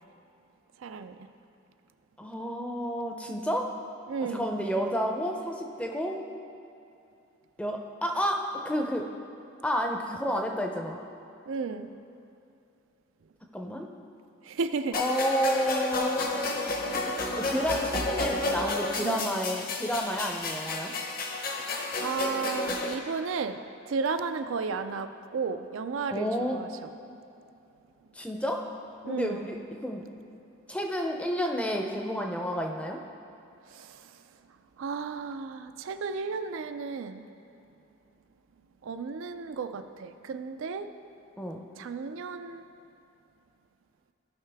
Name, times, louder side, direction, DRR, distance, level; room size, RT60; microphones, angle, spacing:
voice 1, 0.8-1.2 4.1-4.5 11.5-11.9 14.5-15.0 19.0-19.3 21.3-21.4 22.0-23.6 23.9-26.7 29.0-29.4 33.7-34.0 34.8-37.2 38.8-40.9 41.8-42.6, right 5 dB, 75° right, 9 dB, 0.4 m, -33 dB
voice 2, 2.2-3.7 4.2-6.2 7.6-9.1 9.6-11.0 13.5-13.9 14.9-16.2 17.4-20.9 26.1-26.6 28.2-28.6 29.1-30.0 30.7-33.0 41.4-41.6, equal, 5° left, 2 dB, 0.5 m, -30 dB
sound 1, 14.9-22.9, left 2 dB, 45° left, 0.8 m, -31 dB
15.5 x 5.6 x 3.4 m, 2.7 s
head